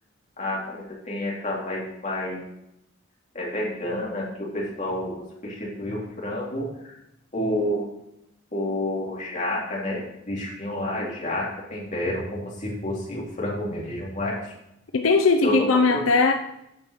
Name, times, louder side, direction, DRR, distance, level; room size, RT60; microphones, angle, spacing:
voice 1, 0.4-2.4 3.3-6.7 7.3-7.9 8.5-14.4 15.4-16.0, left 1 dB, 40° left, -4 dB, 2.8 m, -29 dB
voice 2, 14.9-16.3, left 4 dB, 90° left, 6 dB, 0.6 m, -19 dB
8.8 x 5.6 x 6.3 m, 0.85 s
head